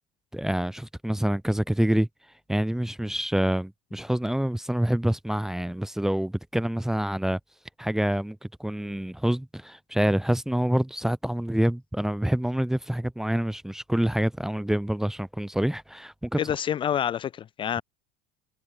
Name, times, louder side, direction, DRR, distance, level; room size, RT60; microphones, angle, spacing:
voice 1, 0.3-2.1 2.5-7.4 7.8-16.4, right 1 dB, ahead, 1.2 m, -26 dB
voice 2, 16.4-17.8, left 9 dB, 25° left, 0.6 m, -27 dB
cardioid pair, 155°, 19 cm